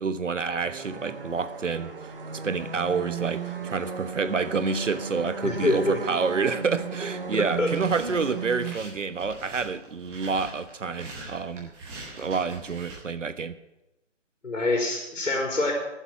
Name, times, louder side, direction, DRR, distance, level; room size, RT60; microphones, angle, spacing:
voice 1, 0.0-11.7 12.2-13.5, right 5 dB, 75° right, 11 dB, 1.3 m, -28 dB
sound 1, 0.6-8.7, right 5 dB, 45° right, 1.4 m, -35 dB
voice 2, 5.4-6.0 7.6-7.7 14.4-15.7, left 2 dB, 75° left, 1 dB, 4.1 m, -25 dB
sound 2, 7.4-13.0, right 2 dB, 5° right, 1.0 m, -43 dB
14.0 x 7.3 x 10.0 m, 0.92 s
figure-of-eight pair, 160°, 38 cm